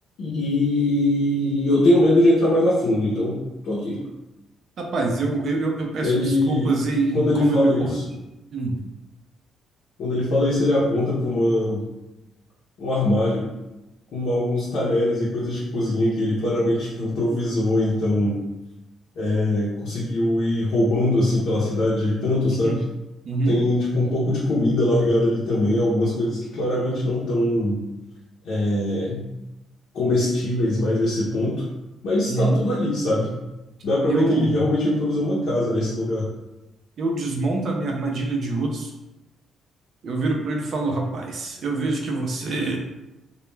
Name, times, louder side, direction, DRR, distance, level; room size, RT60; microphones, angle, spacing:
voice 1, 0.2-3.4 3.6-4.0 6.0-6.7 7.1-8.0 10.0-11.8 12.8-13.4 14.1-18.4 19.2-22.8 23.4-27.8 28.4-29.3 29.9-31.6 32.0-33.3 33.8-36.2, left 1 dB, 75° left, -8 dB, 0.7 m, -22 dB
voice 2, 4.8-8.2 8.5-8.8 22.5-22.8 23.3-23.6 32.3-32.6 34.1-34.6 37.0-38.9 40.0-42.8, right 3 dB, 60° right, 1 dB, 0.5 m, -25 dB
2.3 x 2.1 x 3.1 m, 0.99 s
supercardioid pair, 65°, 0 cm